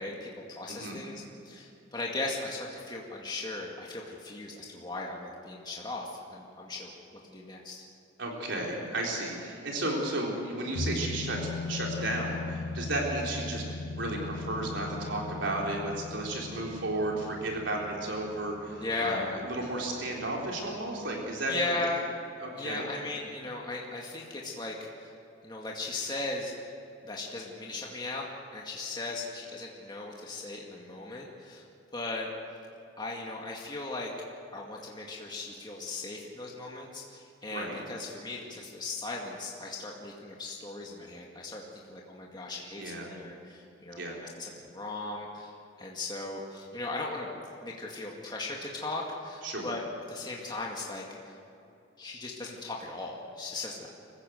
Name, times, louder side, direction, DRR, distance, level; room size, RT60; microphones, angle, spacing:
voice 1, 0.0-6.9 7.3-7.8 18.8-19.4 21.5-22.1 22.6-25.1 25.4-26.7 27.0-28.3 28.5-31.7 31.9-32.3 33.0-34.1 34.5-44.0 44.4-47.3 47.6-51.4 52.0-53.9, left 2 dB, 25° left, -2 dB, 2.1 m, -37 dB
voice 2, 8.2-13.6 13.9-21.6 22.4-22.9 37.5-37.8 42.8-43.1 44.0-44.2 49.4-49.7, right 1 dB, 70° right, -1 dB, 3.8 m, -33 dB
sound 1, 10.8-19.9 20.2-20.3, left 3 dB, 85° left, 1.9 m, -38 dB
24.5 x 15.5 x 7.9 m, 2.7 s
head